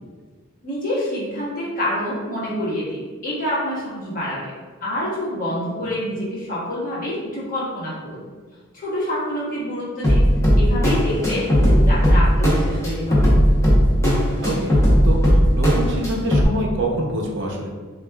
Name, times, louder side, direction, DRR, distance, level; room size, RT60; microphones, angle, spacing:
voice 1, 0.6-4.5 4.8-8.2 8.7-10.3 10.6-13.4, left 1 dB, 40° left, -7 dB, 1.3 m, -27 dB
sound 1, 10.0-16.4, equal, 15° left, 0.8 m, -17 dB
voice 2, 14.4-17.7, right 1 dB, 60° right, 0 dB, 0.7 m, -26 dB
6.7 x 2.5 x 2.3 m, 1.4 s
head